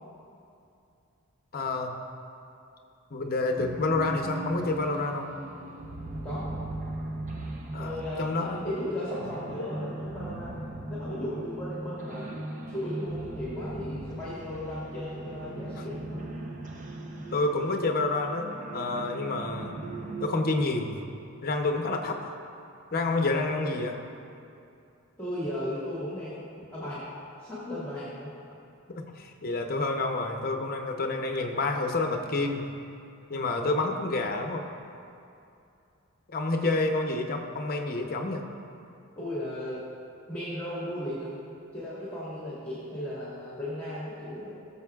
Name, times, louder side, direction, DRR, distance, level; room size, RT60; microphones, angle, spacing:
voice 1, 1.5-2.0 3.1-5.3 7.7-8.7 17.3-19.8 20.2-21.0 21.4-22.2 22.9-23.9 28.9-32.7 33.3-34.7 36.3-38.4, left 2 dB, 45° left, 3 dB, 0.7 m, -28 dB
sound 1, 3.5-20.3, right 1 dB, 35° right, 0.7 m, -38 dB
voice 2, 6.2-6.6 7.8-10.6 10.9-12.3 12.7-16.3 25.2-26.5 26.7-27.0 27.4-28.3 39.2-39.8 40.3-41.4 41.7-44.5, left 1 dB, 5° left, -9 dB, 1.8 m, -36 dB
19.5 x 7.0 x 2.4 m, 2.6 s
head